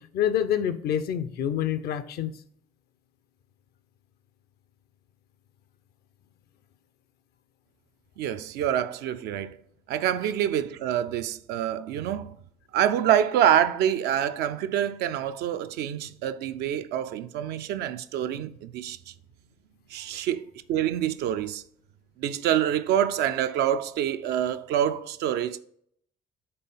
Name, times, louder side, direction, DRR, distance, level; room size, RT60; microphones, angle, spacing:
voice 1, 0.1-2.3 20.1-20.2, left 9 dB, 60° left, 0.6 m, -27 dB
voice 2, 8.2-9.6 9.9-12.3 12.7-19.0 19.9-21.6 22.2-25.6, right 10 dB, 65° right, 0.4 m, -26 dB
5.5 x 3.8 x 5.3 m
hypercardioid pair, 50°, 18 cm